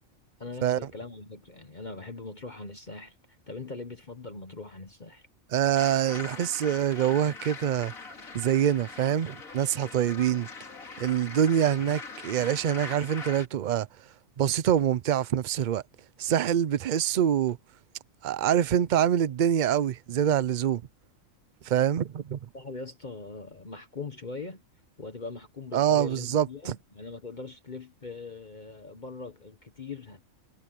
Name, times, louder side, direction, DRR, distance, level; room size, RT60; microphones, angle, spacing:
voice 1, 0.4-3.2 3.5-5.3 22.5-24.6 25.0-30.2, left 3 dB, 35° left, 1.2 m, -41 dB
voice 2, 5.5-7.9 8.3-10.5 11.0-13.9 14.4-15.8 16.2-17.6 18.2-20.8 21.7-22.4 25.7-26.8, right 10 dB, 60° right, 0.5 m, -25 dB
sound 1, 5.7-13.5, left 4 dB, 80° left, 2.7 m, -42 dB
omnidirectional pair, 1.4 m